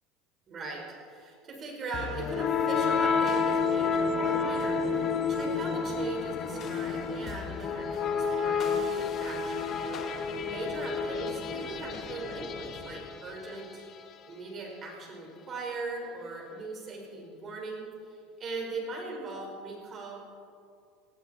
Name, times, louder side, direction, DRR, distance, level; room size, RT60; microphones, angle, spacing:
voice 1, 0.5-9.7 10.4-13.8 14.3-20.2, right 3 dB, 35° right, -1 dB, 4.9 m, -39 dB
sound 1, 1.9-13.8, left 5 dB, 40° left, 1.2 m, -30 dB
18.5 x 16.0 x 4.4 m, 2.4 s
supercardioid pair, 115°, 0 cm